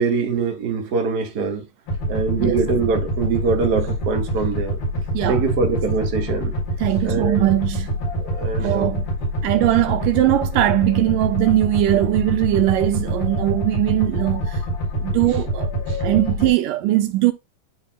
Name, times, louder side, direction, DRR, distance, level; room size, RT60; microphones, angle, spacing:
voice 1, 0.0-1.6 2.1-4.8 5.3-6.5 7.0-7.5 8.2-9.0 15.9-16.0, right 4 dB, 40° right, 1.5 m, -23 dB
sound 1, 1.9-16.5, right 1 dB, 85° left, 6.1 m, -25 dB
voice 2, 6.8-8.0 8.6-9.1 9.4-14.6 15.0-15.7 16.0-17.3, right 15 dB, 80° right, 2.2 m, -20 dB
11.5 x 4.1 x 2.3 m
omnidirectional pair, 4.0 m